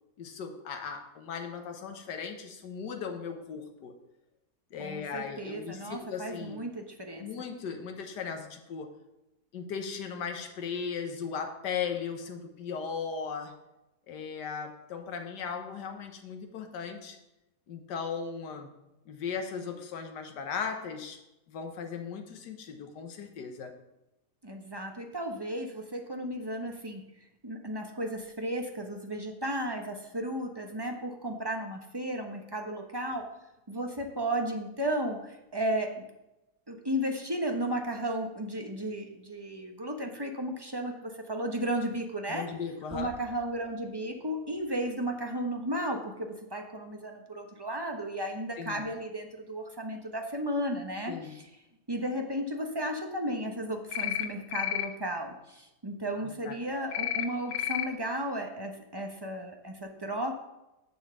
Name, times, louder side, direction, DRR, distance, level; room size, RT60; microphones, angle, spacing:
voice 1, 0.2-4.0 4.7-6.6 7.2-8.9 9.5-13.6 14.1-17.2 17.7-18.7 19.1-21.2 21.5-23.7 42.3-43.1 48.6-48.9 51.1-51.4 56.2-56.6, left 6 dB, 75° left, 5 dB, 1.7 m, -37 dB
voice 2, 4.8-7.3 24.4-27.0 27.4-33.3 33.7-36.0 36.7-42.5 42.9-51.4 51.9-60.4, right 1 dB, 20° right, 3 dB, 0.9 m, -34 dB
sound 1, 53.9-54.3 54.5-54.9 56.9-57.2 57.5-57.8, left 12 dB, 60° left, 1.0 m, -30 dB
7.3 x 7.2 x 6.8 m, 0.95 s
omnidirectional pair, 1.8 m